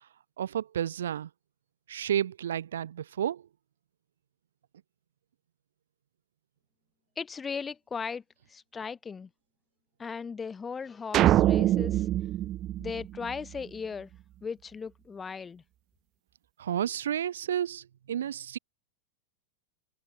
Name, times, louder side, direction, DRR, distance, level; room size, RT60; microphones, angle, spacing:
voice 1, 0.4-1.3 1.9-3.4 16.6-18.6, right 10 dB, 65° right, 2.0 m, -31 dB
voice 2, 7.2-8.2 8.5-9.3 10.0-12.1 12.8-14.1 14.4-15.6, left 5 dB, 15° left, 2.9 m, -37 dB
sound 1, 11.1-13.6, right 13 dB, 35° right, 2.1 m, -24 dB
figure-of-eight pair, 90°, 0 cm